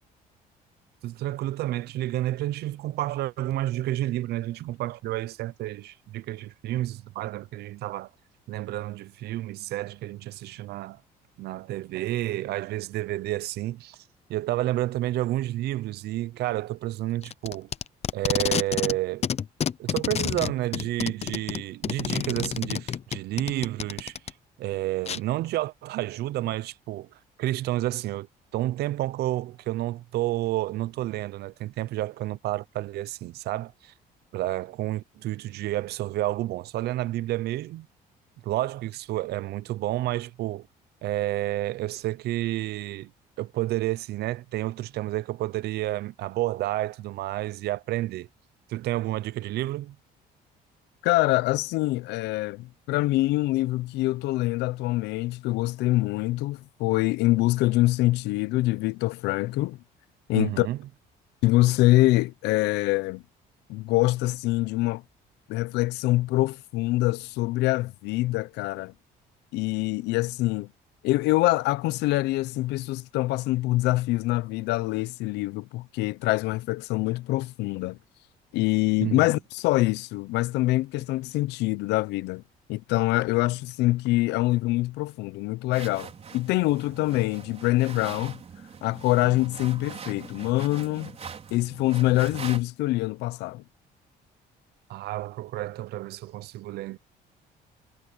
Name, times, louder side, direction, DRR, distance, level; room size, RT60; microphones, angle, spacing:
voice 1, 1.0-8.1 8.5-11.0 11.4-17.7 18.1-19.3 19.8-28.3 28.5-33.9 34.3-37.9 38.4-40.7 41.0-43.1 43.4-48.3 48.7-50.0 60.3-60.8 79.0-79.4 94.9-97.0, right 15 dB, 75° right, 0.8 m, -30 dB
Packing tape duct tape, 17.2-19.0 19.2-24.3 25.1-25.2, left 8 dB, 40° left, 0.8 m, -29 dB
voice 2, 51.0-59.8 60.3-60.7 61.4-63.2 63.7-65.0 65.5-68.9 69.5-70.7 71.0-78.0 78.5-82.4 82.7-88.4 88.8-91.1 91.5-93.6, left 18 dB, 90° left, 0.7 m, -25 dB
sound 1, 85.7-92.6, right 6 dB, 40° right, 4.9 m, -42 dB
cardioid pair, 110°, 17 cm